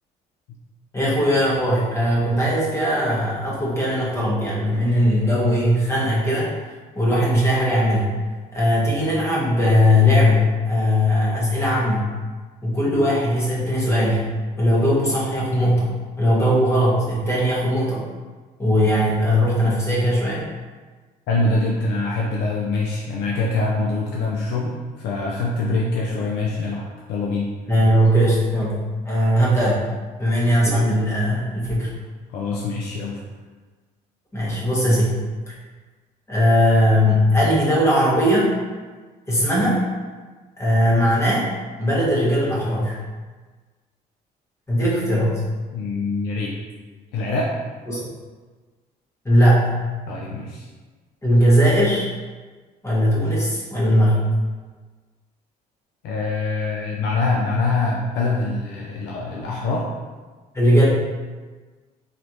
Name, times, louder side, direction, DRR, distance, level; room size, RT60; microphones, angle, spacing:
voice 1, 0.9-6.5 6.9-8.1 8.5-12.1 12.6-14.3 14.6-18.1 18.6-20.5 27.7-29.8 30.2-31.9 34.3-35.1 35.5-35.6 36.3-38.5 39.3-39.8 40.6-41.5 41.8-43.0 44.7-45.4 47.9-48.0 49.2-49.8 51.2-52.1 52.8-54.2 60.5-60.9, equal, 15° left, -6 dB, 1.3 m, -19 dB
voice 2, 21.3-27.5 32.3-33.2 45.7-46.5 47.1-47.5 50.1-50.7 56.0-59.9, left 3 dB, 85° left, -3 dB, 0.6 m, -24 dB
4.1 x 3.3 x 3.0 m, 1.4 s
cardioid pair, 110°, 17 cm